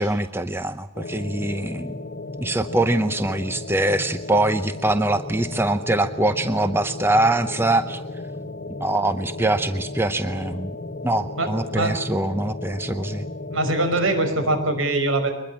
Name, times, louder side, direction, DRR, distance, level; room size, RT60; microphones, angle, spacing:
voice 1, 0.0-1.9 2.4-8.0 8.8-10.8 11.0-13.3, right 1 dB, 10° right, 10 dB, 0.7 m, -23 dB
sound 1, 0.9-14.7, left 2 dB, 50° left, 1.4 m, -34 dB
voice 2, 11.4-12.0 13.5-15.3, right 2 dB, 70° right, 7 dB, 5.5 m, -23 dB
23.5 x 21.0 x 7.4 m, 0.88 s
head